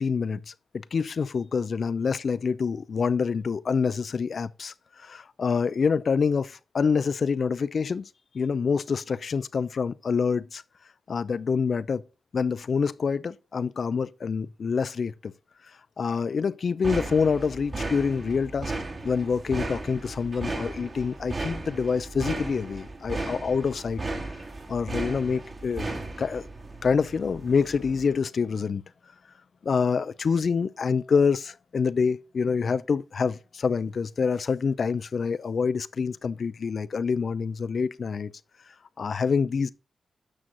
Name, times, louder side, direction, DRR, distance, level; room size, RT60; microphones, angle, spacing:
voice 1, 0.0-8.1 8.3-10.6 11.1-12.0 12.3-15.3 16.0-18.7 19.0-24.0 24.7-25.9 26.2-26.4 26.8-28.8 29.6-38.3 39.0-39.7, left 5 dB, 65° left, 0.6 m, -26 dB
sound 1, 16.8-28.1, right 2 dB, 45° right, 2.7 m, -35 dB
9.9 x 6.4 x 4.0 m
cardioid pair, 55°, 0 cm